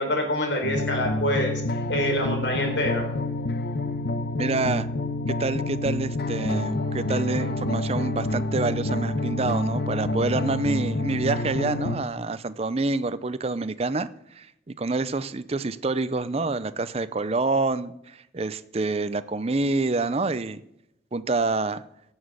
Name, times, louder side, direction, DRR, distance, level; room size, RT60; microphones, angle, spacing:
voice 1, 0.0-1.5 1.8-3.1, left 1 dB, 75° left, 3 dB, 4.0 m, -26 dB
sound 1, 0.6-12.0, left 2 dB, 60° left, 1.1 m, -28 dB
voice 2, 4.4-4.9 5.3-20.6 21.1-21.8, right 3 dB, 35° right, 14 dB, 0.5 m, -27 dB
16.5 x 7.3 x 6.3 m, 0.80 s
head